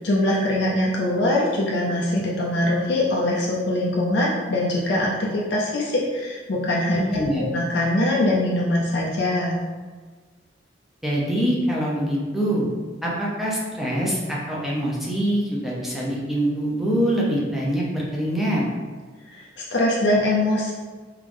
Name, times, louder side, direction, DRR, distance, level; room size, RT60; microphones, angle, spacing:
voice 1, 0.0-9.6 19.3-20.7, left 1 dB, 65° left, -4 dB, 0.7 m, -23 dB
voice 2, 6.9-7.4 11.0-12.7 13.0-18.6, equal, ahead, -5 dB, 0.9 m, -24 dB
3.7 x 3.6 x 3.5 m, 1.5 s
head